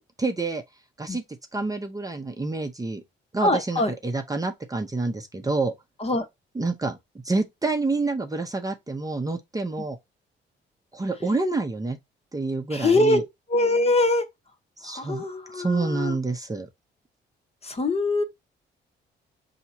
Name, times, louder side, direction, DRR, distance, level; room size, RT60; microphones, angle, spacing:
voice 1, 0.2-0.6 1.0-1.2 1.5-3.0 3.3-5.7 6.5-7.0 7.2-10.0 10.9-12.0 12.3-13.2 14.8-15.3 15.5-16.7, right 3 dB, 20° right, 0.7 m, -28 dB
voice 2, 3.4-3.9 6.0-6.2 12.7-13.2 13.5-14.2 14.8-16.1 17.6-18.2, left 2 dB, 30° left, 1.1 m, -23 dB
5.5 x 2.9 x 2.8 m
cardioid pair, 90°, 20 cm